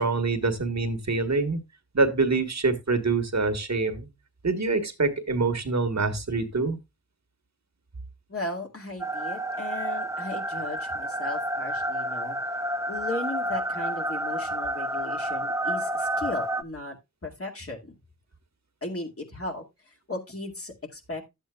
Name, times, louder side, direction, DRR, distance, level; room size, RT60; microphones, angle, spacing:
voice 1, 0.0-1.6 1.9-4.1 4.4-6.8, right 3 dB, 60° right, 8 dB, 1.5 m, -25 dB
voice 2, 8.3-12.4 12.9-17.0 17.2-18.0 18.8-21.2, left 2 dB, 45° left, 1 dB, 2.2 m, -36 dB
sound 1, 9.0-16.6, right 1 dB, 10° right, 0.5 m, -30 dB
12.0 x 8.0 x 2.3 m, 0.22 s
wide cardioid pair, 70°, 31 cm